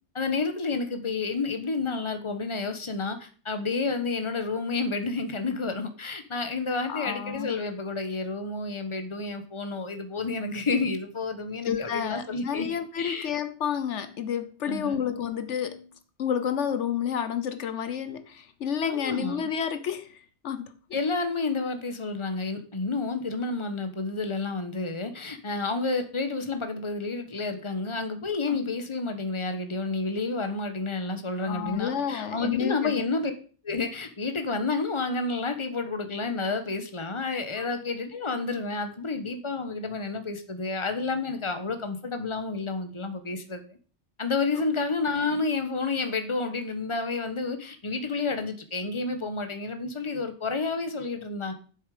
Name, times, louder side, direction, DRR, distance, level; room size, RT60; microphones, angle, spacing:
voice 1, 0.1-12.7 13.0-13.3 14.6-15.0 18.9-19.4 20.9-33.3 33.6-43.8 44.2-51.5, left 3 dB, 25° left, 7 dB, 1.3 m, -30 dB
voice 2, 6.9-7.6 11.6-15.9 16.2-20.7 28.5-28.6 31.4-32.9 37.5-37.7, left 8 dB, 75° left, 10 dB, 1.1 m, -30 dB
10.0 x 7.6 x 5.0 m, 0.40 s
omnidirectional pair, 1.2 m